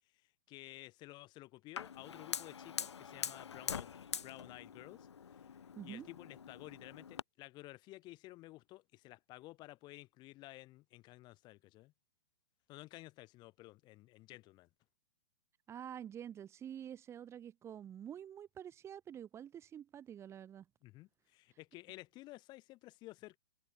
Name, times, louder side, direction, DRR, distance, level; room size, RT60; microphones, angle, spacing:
voice 1, 0.2-11.9 12.7-14.7 20.8-23.4, left 19 dB, 30° left, 5.4 m, -54 dB
Fire, 1.8-7.2, left 7 dB, 90° left, 4.1 m, -44 dB
voice 2, 5.8-6.1 15.7-20.6, right 9 dB, 20° right, 2.7 m, -48 dB
hypercardioid pair, 140°, 14 cm